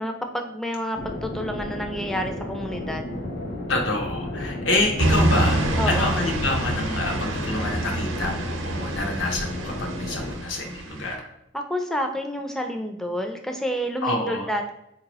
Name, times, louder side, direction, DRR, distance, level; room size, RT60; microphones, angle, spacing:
voice 1, 0.0-3.0 5.8-6.2 11.5-14.7, equal, ahead, 3 dB, 0.4 m, -29 dB
sound 1, 0.9-10.4, left 1 dB, 50° left, 0.8 m, -33 dB
voice 2, 3.7-11.3 14.0-14.5, left 2 dB, 80° left, 2 dB, 0.8 m, -27 dB
sound 2, 5.0-11.1, right 1 dB, 85° right, 0.7 m, -26 dB
4.1 x 2.8 x 2.9 m, 0.83 s
head